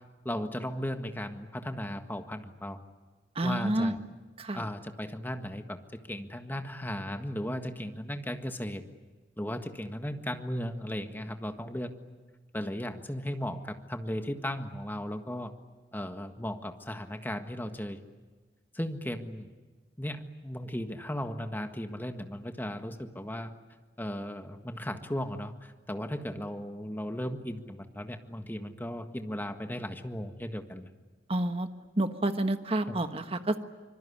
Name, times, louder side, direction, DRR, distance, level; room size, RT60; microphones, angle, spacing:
voice 1, 0.3-2.8 3.4-4.0 4.5-8.8 9.4-11.9 12.5-15.5 15.9-18.0 18.7-19.5 20.0-23.5 24.0-30.9 32.9-33.0, equal, 10° left, 6 dB, 1.6 m, -36 dB
voice 2, 3.3-3.9 4.4-4.6 31.3-31.7 32.0-33.6, right 1 dB, 35° right, 8 dB, 1.4 m, -29 dB
25.5 x 23.0 x 9.8 m, 1.3 s
head